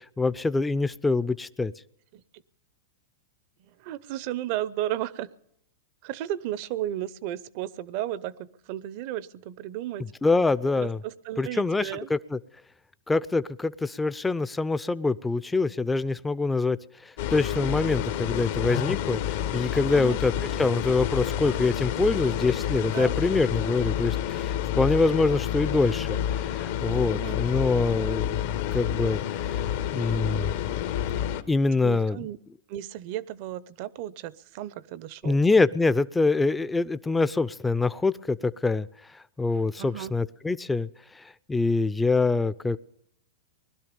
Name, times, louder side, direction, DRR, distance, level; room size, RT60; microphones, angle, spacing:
voice 1, 0.0-1.7 10.2-11.0 11.4-12.4 13.1-16.8 17.3-20.3 20.6-29.2 29.9-30.5 31.5-32.2 35.2-38.9 39.4-40.9 41.2-42.8, left 3 dB, 10° left, 15 dB, 0.5 m, -25 dB
voice 2, 3.7-5.3 6.0-10.1 10.7-12.1 19.9-20.2 22.9-23.2 27.1-27.4 31.7-32.4 32.7-35.4 39.8-40.1, right 13 dB, 55° right, 19 dB, 0.7 m, -34 dB
sound 1, 17.2-31.4, left 10 dB, 65° left, 1.1 m, -29 dB
20.5 x 12.0 x 5.3 m, 0.78 s
hypercardioid pair, 115°, 0 cm